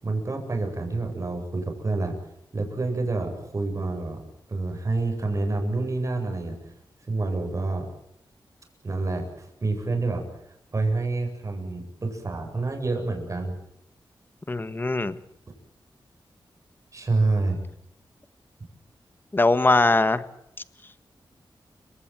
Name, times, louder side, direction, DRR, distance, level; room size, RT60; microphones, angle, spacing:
voice 1, 0.0-2.2 2.5-4.2 4.5-6.6 7.1-7.9 8.8-10.2 10.7-13.5 16.9-17.6, right 3 dB, 35° right, 4 dB, 7.8 m, -27 dB
voice 2, 14.5-15.2 19.3-20.2, left 2 dB, 25° left, 13 dB, 1.6 m, -21 dB
30.0 x 17.5 x 7.7 m, 0.78 s
wide cardioid pair, 135°, 9 cm